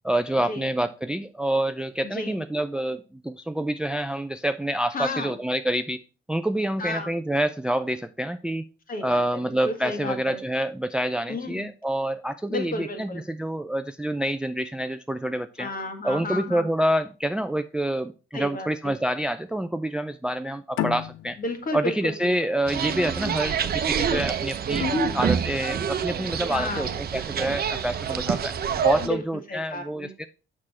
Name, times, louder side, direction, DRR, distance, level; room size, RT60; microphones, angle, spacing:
voice 1, 0.0-6.0 6.3-8.6 9.0-15.7 16.0-21.4 21.7-24.8 25.1-28.5 28.8-30.3, right 1 dB, 5° right, 11 dB, 0.4 m, -27 dB
voice 2, 2.0-2.4 4.9-5.4 6.8-7.1 8.9-10.4 11.3-11.7 12.5-13.2 15.6-16.7 18.3-18.9 21.4-22.6 24.8-25.2 26.5-27.0 29.0-29.2 29.5-30.1, left 2 dB, 45° left, 5 dB, 1.9 m, -32 dB
sound 1, 20.8-24.0, left 13 dB, 85° left, 0.6 m, -34 dB
sound 2, 22.7-29.1, right 7 dB, 50° right, 0.8 m, -27 dB
6.6 x 6.2 x 4.2 m, 0.34 s
cardioid pair, 90°, 20 cm